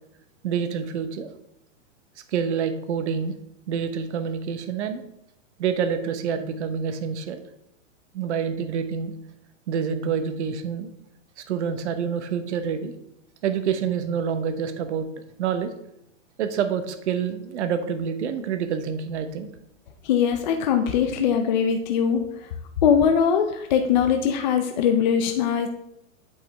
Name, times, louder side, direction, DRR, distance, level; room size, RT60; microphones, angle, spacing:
voice 1, 0.4-1.3 2.3-3.3 3.7-5.0 5.6-7.4 8.1-9.1 9.7-10.9 11.4-12.9 13.4-15.1 15.4-15.7 16.4-19.5, right 7 dB, 60° right, 9 dB, 0.9 m, -27 dB
voice 2, 20.0-22.2 22.8-25.7, left 7 dB, 35° left, 5 dB, 0.5 m, -21 dB
8.1 x 5.2 x 3.4 m, 0.80 s
hypercardioid pair, 160°, 39 cm